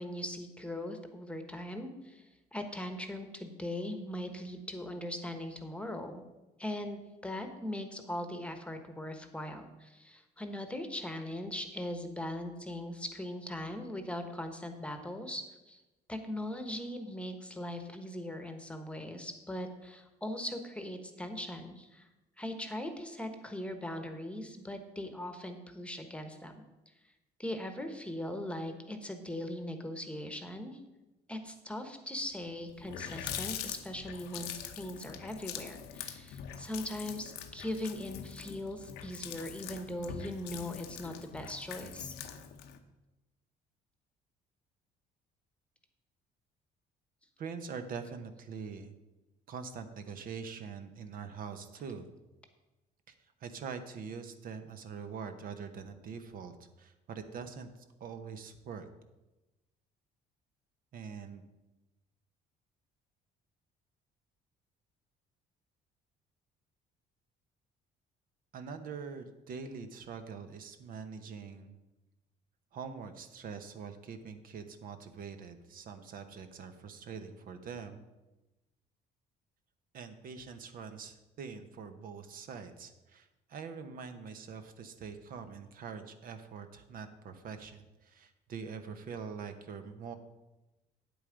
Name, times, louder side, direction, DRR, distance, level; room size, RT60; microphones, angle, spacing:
voice 1, 0.0-6.2 6.6-15.8 16.1-22.1 22.4-26.6 27.4-30.8 31.3-42.1, left 1 dB, 5° left, 7 dB, 1.1 m, -40 dB
Water tap faucet, 32.3-32.4 32.7-42.8, left 9 dB, 85° left, 0.9 m, -43 dB
voice 2, 47.4-48.9 49.5-52.1 53.1-53.2 53.4-58.9 60.9-61.4 68.5-71.7 72.7-78.0 79.9-90.1, right 6 dB, 60° right, 8 dB, 0.9 m, -44 dB
8.8 x 8.1 x 5.1 m, 1.0 s
cardioid pair, 110°, 17 cm